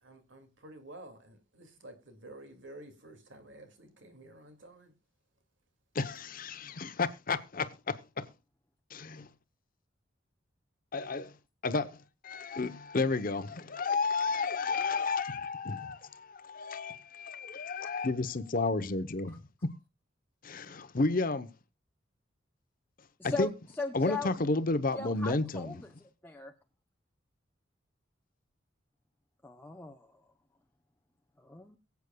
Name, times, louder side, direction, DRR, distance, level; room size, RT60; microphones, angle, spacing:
voice 1, 0.0-4.9, right 1 dB, 75° right, 2.2 m, -51 dB
voice 2, 5.9-8.3 8.9-9.3 10.9-11.3 11.6-12.0 12.2-19.3 20.4-21.5 23.2-23.5 23.9-25.8, left 3 dB, 45° left, 0.8 m, -32 dB
voice 3, 23.8-24.3 24.9-25.9 26.2-26.5 29.4-30.1 31.4-31.8, left 3 dB, 10° left, 0.7 m, -38 dB
23.0 x 8.2 x 2.2 m
head